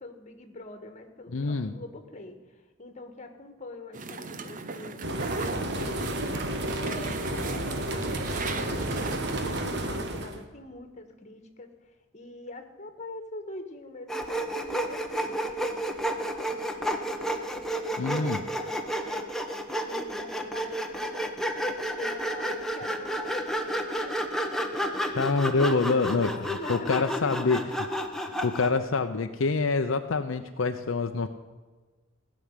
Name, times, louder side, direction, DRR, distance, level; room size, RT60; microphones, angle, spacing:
voice 1, 0.0-21.4 22.0-24.6 24.9-25.0 25.2-25.3 25.8-27.6, left 2 dB, 35° left, 7 dB, 1.6 m, -44 dB
voice 2, 1.3-1.7 18.0-18.4 25.2-27.6 28.2-31.3, left 4 dB, 70° left, 7 dB, 0.6 m, -26 dB
sound 1, 3.9-9.6, right 3 dB, 40° right, 0.8 m, -37 dB
sound 2, 5.0-10.4, right 1 dB, 55° right, 1.4 m, -31 dB
Sawing, 14.1-28.8, equal, ahead, 1.0 m, -31 dB
16.0 x 6.3 x 9.7 m, 1.3 s
head